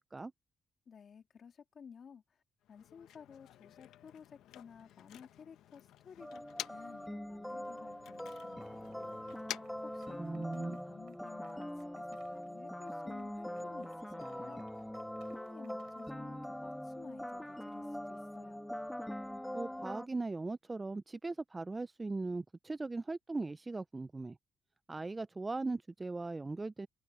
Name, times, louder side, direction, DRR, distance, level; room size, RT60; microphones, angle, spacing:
voice 1, 0.9-2.4 2.7-6.4 6.7-9.4 9.8-14.6 15.3-18.7, left 6 dB, 50° left, 2.6 m, -55 dB
Motor vehicle (road), 2.6-7.1 7.4-10.7, left 12 dB, 85° left, 0.9 m, -50 dB
sound 1, 6.2-20.1, left 1 dB, 5° left, 2.0 m, -43 dB
sound 2, 8.3-16.1, right 13 dB, 85° right, 5.1 m, -67 dB
voice 2, 10.2-10.8 19.5-24.4 24.9-26.9, right 3 dB, 20° right, 0.3 m, -39 dB
cardioid pair, 90°, 0 cm